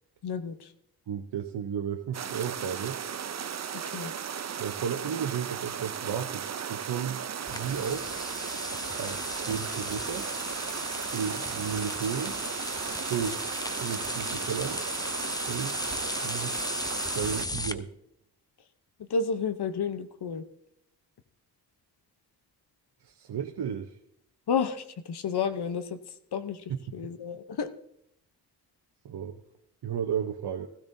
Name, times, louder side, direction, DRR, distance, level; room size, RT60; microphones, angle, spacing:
voice 1, 0.2-0.7 3.7-4.1 19.0-20.4 24.5-26.0 26.3-26.6 26.9-27.7, left 5 dB, 75° left, 10 dB, 0.8 m, -31 dB
voice 2, 1.1-3.0 4.6-6.4 6.7-7.2 7.5-8.1 8.9-10.3 11.1-12.4 13.1-13.4 13.8-14.8 15.5-15.8 16.2-16.7 17.1-17.9 23.0-23.9 29.0-29.4 29.8-30.7, right 8 dB, 75° right, 5 dB, 0.8 m, -33 dB
sound 1, 2.1-17.5, right 8 dB, 40° right, 0.5 m, -36 dB
sound 2, 7.5-17.7, left 2 dB, 10° left, 0.6 m, -36 dB
16.0 x 12.5 x 2.7 m, 0.76 s
cardioid pair, 50°, 40 cm